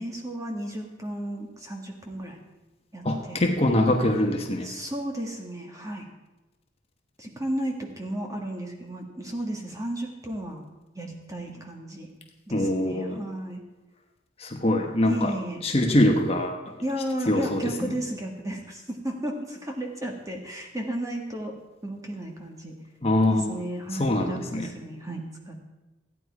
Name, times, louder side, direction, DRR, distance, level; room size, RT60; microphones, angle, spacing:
voice 1, 0.0-2.4 2.9-3.4 4.6-6.1 7.2-10.7 11.0-12.1 12.5-13.6 15.0-15.6 16.8-21.5 21.8-22.7 23.3-25.6, right 1 dB, 15° right, 1 dB, 1.7 m, -34 dB
voice 2, 3.0-4.7 12.5-13.2 14.4-15.3 15.6-16.6 17.3-17.6 23.0-23.6 24.0-24.7, left 1 dB, 30° left, 2 dB, 1.1 m, -23 dB
15.0 x 9.7 x 4.8 m, 1.1 s
head